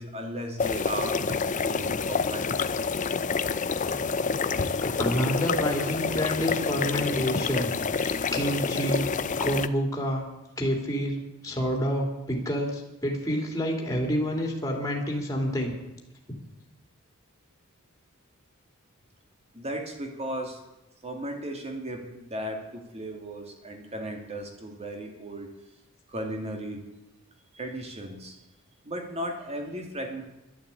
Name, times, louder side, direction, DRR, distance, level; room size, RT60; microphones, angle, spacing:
voice 1, 0.0-2.7 19.5-20.6 21.0-25.5 26.1-26.9 27.5-28.4 28.8-30.2, right 1 dB, 30° right, 3 dB, 2.6 m, -36 dB
sound 1, 0.6-9.7, left 5 dB, 35° left, 0.6 m, -28 dB
voice 2, 4.8-9.0 9.4-10.2 10.6-11.1 11.4-15.7 16.3-16.4, equal, 15° left, 0 dB, 2.9 m, -28 dB
11.5 x 10.5 x 8.3 m, 0.95 s
head